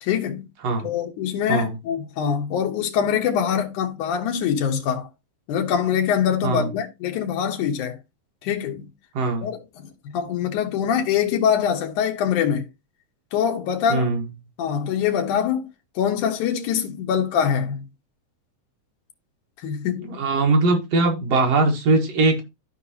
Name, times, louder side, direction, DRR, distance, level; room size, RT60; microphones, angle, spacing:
voice 1, 0.0-0.5 0.8-5.1 5.5-8.0 8.4-8.9 9.4-9.9 10.1-12.6 13.3-14.1 14.6-15.6 16.0-17.9 19.6-20.2, left 8 dB, 80° left, 2.7 m, -24 dB
voice 2, 9.1-9.5 13.9-14.3 20.1-22.4, right 3 dB, 60° right, 2.6 m, -21 dB
13.5 x 4.7 x 2.9 m
omnidirectional pair, 3.5 m